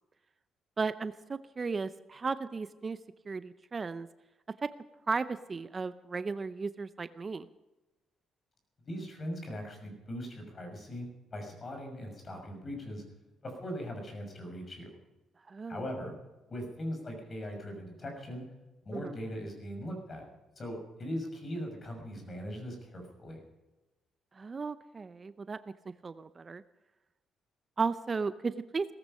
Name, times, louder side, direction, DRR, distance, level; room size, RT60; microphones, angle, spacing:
voice 1, 0.8-3.0 3.3-4.1 4.6-4.7 5.1-7.5 15.5-15.8 18.9-19.1 24.3-25.6 26.0-26.6 27.8-28.8, right 4 dB, 35° right, 13 dB, 0.6 m, -35 dB
voice 2, 8.8-13.0 13.4-14.9 15.7-16.1 16.5-18.4 18.8-20.3 20.6-23.4, equal, 40° left, 3 dB, 6.1 m, -40 dB
18.0 x 14.5 x 5.5 m, 1.1 s
cardioid pair, 90°, 0 cm